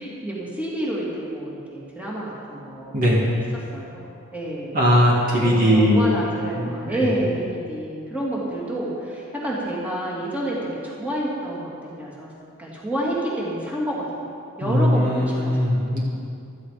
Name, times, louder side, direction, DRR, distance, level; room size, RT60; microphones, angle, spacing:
voice 1, 0.0-3.4 3.7-4.8 5.4-12.3 12.6-14.3 14.6-15.7, right 1 dB, 5° right, -6 dB, 2.9 m, -29 dB
voice 2, 2.9-3.3 4.7-6.2 6.6-7.1 14.6-16.0, equal, 40° right, -4 dB, 2.2 m, -19 dB
15.5 x 13.0 x 5.2 m, 2.5 s
head